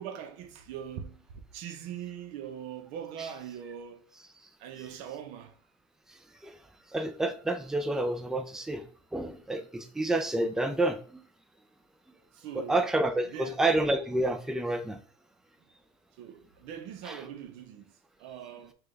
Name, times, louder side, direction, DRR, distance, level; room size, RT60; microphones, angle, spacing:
voice 1, 0.0-4.1 4.6-5.6 12.3-12.8 13.2-13.6 16.2-17.9 18.2-18.7, right 9 dB, 65° right, 0.7 m, -42 dB
voice 2, 6.9-8.8 9.1-11.2 12.5-15.0 17.1-17.2, right 2 dB, 5° right, 0.4 m, -29 dB
5.9 x 2.3 x 3.2 m
supercardioid pair, 130°, 13 cm